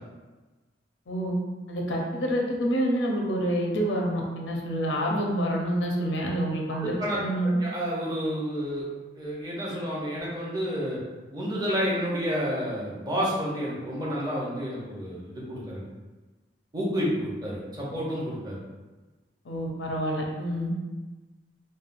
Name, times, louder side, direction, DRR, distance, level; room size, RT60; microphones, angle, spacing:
voice 1, 1.7-7.6 19.4-20.7, equal, 90° left, 0 dB, 0.6 m, -27 dB
voice 2, 6.7-8.9 9.1-11.0 11.3-15.8 16.7-18.6, equal, 20° right, -5 dB, 0.6 m, -30 dB
3.2 x 2.2 x 2.5 m, 1.2 s
head